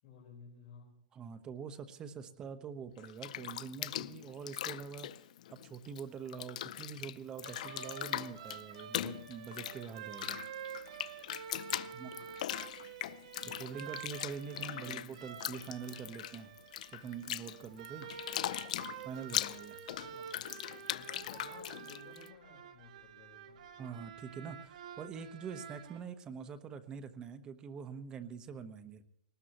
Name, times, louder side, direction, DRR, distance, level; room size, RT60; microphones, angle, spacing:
voice 1, 0.0-1.0 11.7-12.2 14.7-15.1 19.9-20.5 20.9-23.6, left 5 dB, 45° left, -3 dB, 4.6 m, -56 dB
voice 2, 1.1-5.1 5.5-10.4 11.9-12.1 13.6-16.5 16.9-18.1 19.0-19.8 23.8-29.0, right 6 dB, 20° right, 9 dB, 1.1 m, -45 dB
Bathtub (filling or washing), 3.0-6.0 6.3-22.3, left 12 dB, 60° left, 0.6 m, -40 dB
sound 1, 7.4-26.0, right 8 dB, 65° right, 1.5 m, -49 dB
20.5 x 19.5 x 3.1 m, 0.78 s
supercardioid pair, 160°, 4 cm